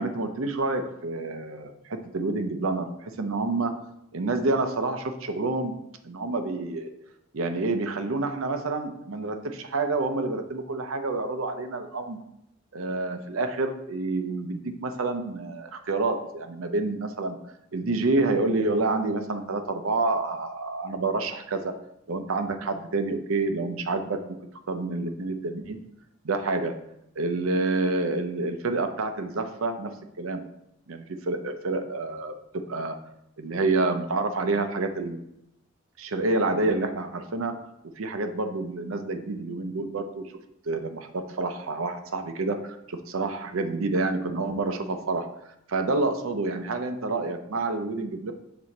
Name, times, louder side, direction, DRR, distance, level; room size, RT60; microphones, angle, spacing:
voice 1, 0.0-3.8 4.1-5.7 6.0-6.9 7.3-12.2 12.7-17.4 17.7-21.7 22.1-24.4 24.7-25.8 26.2-26.7 27.2-29.9 30.2-30.4 30.9-33.0 33.4-35.2 36.0-37.6 38.0-40.3 40.6-45.3 45.7-48.3, right 3 dB, 80° right, 7 dB, 0.6 m, -28 dB
6.2 x 3.8 x 4.1 m, 0.81 s
head